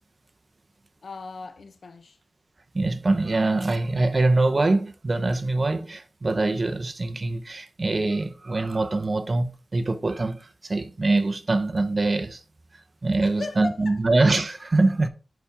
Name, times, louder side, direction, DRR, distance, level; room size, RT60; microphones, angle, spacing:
voice 1, 1.0-2.2 13.2-14.0, left 3 dB, 60° left, 0.9 m, -37 dB
voice 2, 2.7-12.4 13.0-15.1, right 2 dB, 35° right, 0.8 m, -24 dB
10.5 x 4.2 x 3.5 m
wide cardioid pair, 95°, 0 cm